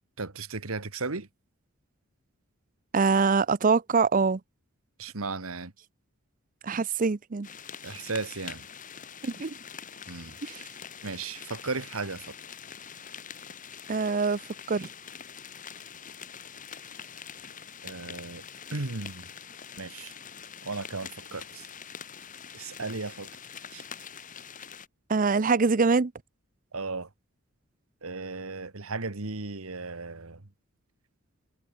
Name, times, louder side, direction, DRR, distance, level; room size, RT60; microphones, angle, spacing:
voice 1, 0.2-1.3 5.0-5.7 7.8-8.7 10.1-10.4 11.0-12.3 17.8-18.4 18.7-19.3 19.8-20.1 20.6-21.7 22.5-23.3 23.7-23.8 26.7-27.1 28.0-30.4, right 3 dB, 90° right, 1.7 m, -35 dB
voice 2, 2.9-4.4 6.6-7.5 9.2-9.6 10.4-10.6 13.9-14.4 14.7-14.9 25.1-26.1, right 4 dB, 40° right, 0.6 m, -24 dB
sound 1, 7.4-24.9, left 7 dB, 40° left, 2.1 m, -44 dB
head